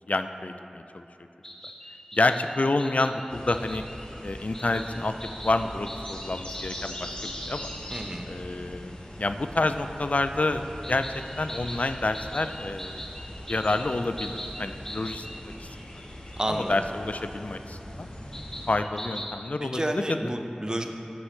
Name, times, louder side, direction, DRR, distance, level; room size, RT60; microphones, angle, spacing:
voice 1, 0.1-1.1 2.1-3.8 4.2-7.7 8.2-11.1 11.4-13.0 13.5-15.3 15.6-15.9 16.5-18.1 18.7-20.3, left 2 dB, 60° left, 9 dB, 0.4 m, -28 dB
sound 1, 1.4-4.1 4.5-8.1 10.8-15.4 16.3-16.4 18.3-19.3, equal, 15° left, 1.0 m, -41 dB
sound 2, 3.3-18.7, left 1 dB, 45° left, 1.4 m, -41 dB
voice 2, 7.9-8.3 16.4-16.7 19.6-20.9, right 1 dB, 30° right, 4 dB, 0.7 m, -30 dB
13.0 x 5.9 x 3.2 m, 2.8 s
wide cardioid pair, 50°, 3 cm